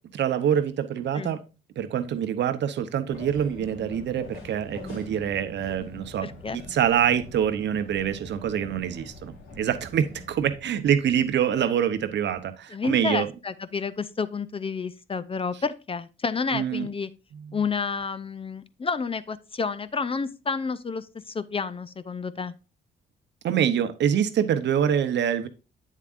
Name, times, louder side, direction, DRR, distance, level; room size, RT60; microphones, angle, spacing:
voice 1, 0.1-1.4 1.8-13.3 16.5-16.9 17.3-17.6 23.4-25.5, right 9 dB, 65° right, 11 dB, 0.8 m, -25 dB
sound 1, 3.1-10.6, left 3 dB, 85° left, 2.7 m, -43 dB
voice 2, 6.2-6.6 12.7-17.1 17.5-22.5, left 5 dB, 30° left, 13 dB, 0.5 m, -30 dB
8.3 x 7.3 x 2.5 m, 0.31 s
cardioid pair, 90°, 20 cm